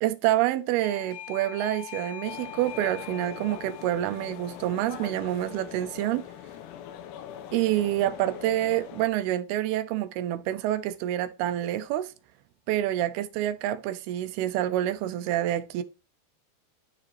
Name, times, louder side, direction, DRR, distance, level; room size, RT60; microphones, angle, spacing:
voice 1, 0.0-6.3 7.5-12.1 12.7-15.8, right 13 dB, 85° right, 2.2 m, -27 dB
Doorbell, 0.8-7.3, left 12 dB, 60° left, 2.9 m, -45 dB
sound 1, 2.3-9.1, left 10 dB, 80° left, 2.8 m, -42 dB
10.0 x 5.0 x 3.1 m
omnidirectional pair, 5.2 m